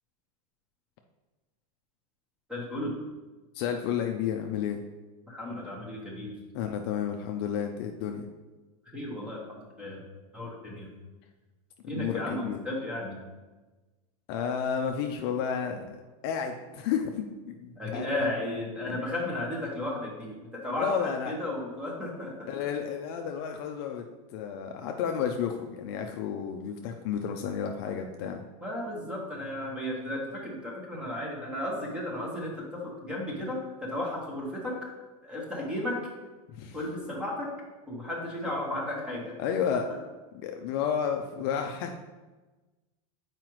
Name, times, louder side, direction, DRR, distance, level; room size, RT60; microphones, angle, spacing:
voice 1, 2.5-3.0 5.3-6.4 8.9-10.0 10.3-10.9 11.9-13.2 17.8-22.5 28.6-34.9 35.2-36.0 36.7-37.5 37.9-39.4 39.7-39.8, left 1 dB, 5° right, -2 dB, 1.0 m, -34 dB
voice 2, 3.5-4.8 6.5-8.2 11.9-12.6 14.3-16.0 16.2-18.2 18.9-19.1 20.8-21.3 22.5-24.0 24.3-28.4 36.6-36.8 39.4-39.9 40.4-42.0, left 7 dB, 40° left, 4 dB, 0.4 m, -31 dB
7.4 x 4.8 x 3.0 m, 1.2 s
supercardioid pair, 165°, 19 cm